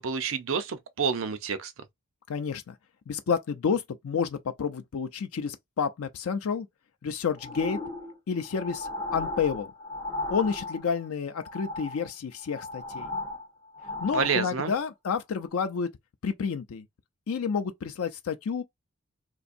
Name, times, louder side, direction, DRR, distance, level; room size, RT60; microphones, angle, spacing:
voice 1, 0.0-1.7 14.1-14.7, right 6 dB, 70° right, 0.5 m, -28 dB
voice 2, 2.3-2.7 3.1-6.7 7.0-7.8 8.3-9.7 10.3-13.1 14.0-15.9 16.2-16.8 17.3-18.6, left 6 dB, 85° left, 0.4 m, -30 dB
sound 1, 7.4-11.1 11.4-12.1 12.4-14.8 15.4-15.5, left 2 dB, 25° left, 1.1 m, -36 dB
3.7 x 2.6 x 2.5 m
head